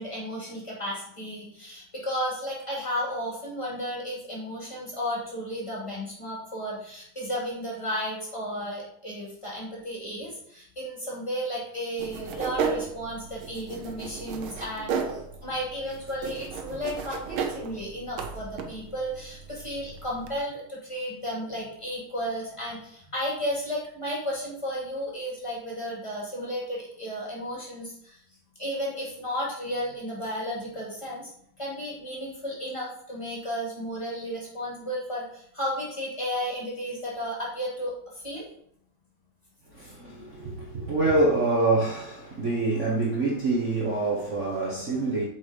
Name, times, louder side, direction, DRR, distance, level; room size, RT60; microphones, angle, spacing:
voice 1, 0.0-28.2 28.6-31.3 31.6-38.5 39.8-39.9, equal, 15° left, -4 dB, 2.8 m, -33 dB
sound 1, 12.0-20.4, right 6 dB, 85° right, 1.7 m, -35 dB
voice 2, 39.7-45.3, right 2 dB, 40° right, -4 dB, 1.5 m, -26 dB
7.9 x 4.7 x 5.2 m, 0.67 s
omnidirectional pair, 2.2 m